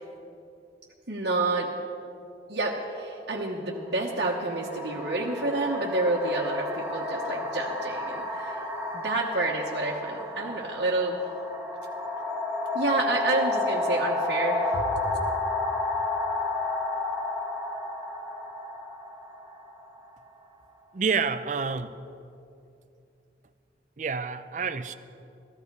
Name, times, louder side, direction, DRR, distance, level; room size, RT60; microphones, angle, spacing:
voice 1, 1.1-1.7 2.5-8.6 8.9-11.2 12.7-15.0, right 2 dB, 70° right, -4 dB, 1.2 m, -29 dB
sound 1, 3.0-3.1 3.9-20.6, left 2 dB, 15° right, 1.8 m, -31 dB
voice 2, 20.9-22.0 24.0-24.9, right 5 dB, 45° right, 11 dB, 0.5 m, -28 dB
14.5 x 14.0 x 4.7 m, 2.6 s
head